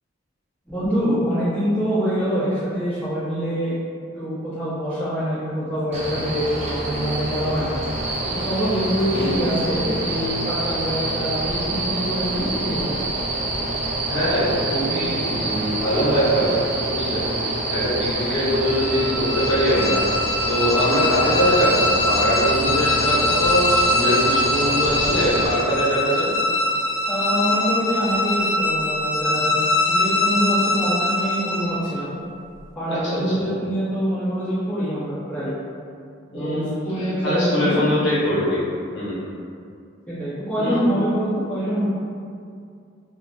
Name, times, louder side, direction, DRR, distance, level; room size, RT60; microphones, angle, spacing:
voice 1, 0.7-3.7 4.1-7.8 8.3-13.0 27.1-29.5 29.9-32.1 32.7-35.5 36.3-37.9 40.1-41.9, equal, 5° left, -14 dB, 1.2 m, -25 dB
sound 1, 5.9-25.5, right 2 dB, 35° right, 0.5 m, -26 dB
voice 2, 9.1-9.4 14.1-16.6 16.9-26.3 32.9-33.5 36.3-38.6 38.9-39.2 40.6-40.8, equal, 60° left, -9 dB, 0.8 m, -23 dB
sound 2, 18.6-32.0, left 2 dB, 80° left, 0.4 m, -23 dB
3.6 x 2.3 x 2.6 m, 2.4 s
head